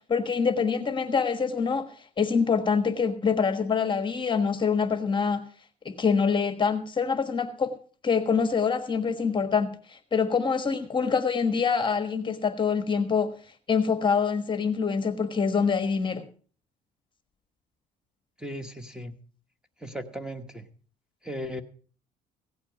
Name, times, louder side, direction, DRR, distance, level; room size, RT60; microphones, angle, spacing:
voice 1, 0.1-1.9 2.2-5.4 5.8-7.7 8.0-13.3 13.7-16.2, left 5 dB, 30° left, 8 dB, 1.4 m, -25 dB
voice 2, 18.4-19.1 19.8-20.7 21.2-21.6, equal, 5° right, 9 dB, 1.2 m, -36 dB
16.5 x 8.8 x 5.1 m, 0.43 s
cardioid pair, 110°, 17 cm